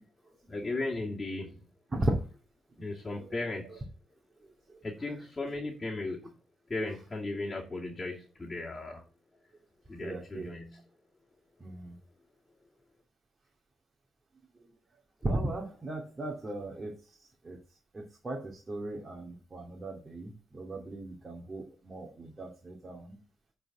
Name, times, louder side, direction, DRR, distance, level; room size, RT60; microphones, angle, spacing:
voice 1, 0.5-1.5 2.8-3.8 4.8-6.3 6.7-9.0 9.9-10.8, left 2 dB, 20° left, -4 dB, 2.4 m, -36 dB
voice 2, 10.0-10.5 11.6-11.9 15.2-16.9 17.4-17.6 17.9-23.2, right 1 dB, 25° right, 0 dB, 2.3 m, -36 dB
9.0 x 4.4 x 6.7 m, 0.35 s
cardioid pair, 90°, 0 cm